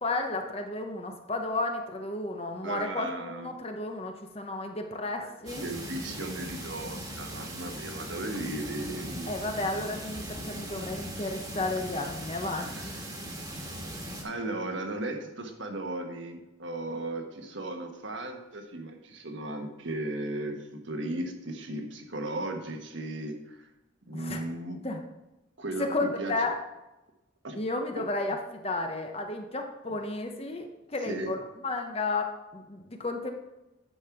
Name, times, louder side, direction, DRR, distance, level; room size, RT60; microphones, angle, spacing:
voice 1, 0.0-5.7 9.3-13.0 24.1-24.4 24.8-25.0 25.8-26.6 27.5-33.3, left 2 dB, 30° left, 4 dB, 0.9 m, -33 dB
voice 2, 2.6-3.6 5.2-5.3 5.6-9.4 12.6-13.2 14.2-23.7 24.1-24.8 25.6-26.5 27.4-27.6 31.0-31.4, right 2 dB, 70° right, 4 dB, 1.4 m, -36 dB
sound 1, 5.5-14.2, right 1 dB, 20° right, 1.6 m, -39 dB
9.8 x 5.3 x 6.0 m, 1.0 s
head